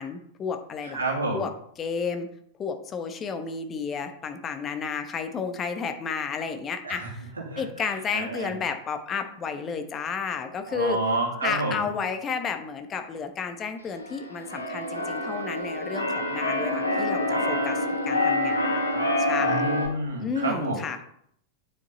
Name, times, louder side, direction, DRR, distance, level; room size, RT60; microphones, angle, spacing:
voice 1, 0.0-1.0 1.3-1.5 1.8-2.3 2.6-11.0 11.4-19.6 20.2-21.0, left 5 dB, 25° left, 7 dB, 1.2 m, -32 dB
voice 2, 0.9-1.4 6.8-7.1 7.5-7.6 8.1-8.5 10.7-11.9 19.4-20.8, right 2 dB, 75° right, -2 dB, 2.7 m, -29 dB
Keyboard (musical), 14.0-19.9, left 1 dB, 80° left, 1.7 m, -27 dB
9.2 x 7.1 x 4.0 m, 0.68 s
figure-of-eight pair, 90°, 0 cm